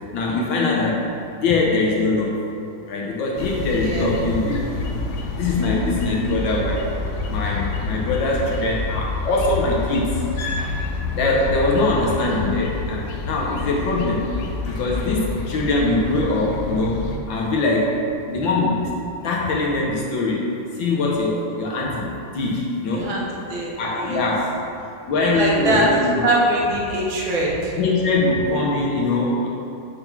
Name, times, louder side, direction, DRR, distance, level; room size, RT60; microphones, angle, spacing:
voice 1, 0.1-1.0 1.4-2.4 2.9-4.8 5.3-6.9 7.3-10.1 10.4-10.7 11.1-14.2 14.7-18.0 18.3-18.8 19.2-20.4 20.8-22.1 22.3-23.1 23.8-24.5 25.1-26.2 27.8-29.5, left 2 dB, 70° left, -2 dB, 1.3 m, -22 dB
sound 1, 3.4-17.2, left 3 dB, 90° left, 0.8 m, -28 dB
voice 2, 22.9-23.2 23.5-24.3 25.2-25.9 26.2-27.8, right 1 dB, 70° right, -3 dB, 1.7 m, -23 dB
5.8 x 3.6 x 5.8 m, 2.6 s
omnidirectional pair, 2.4 m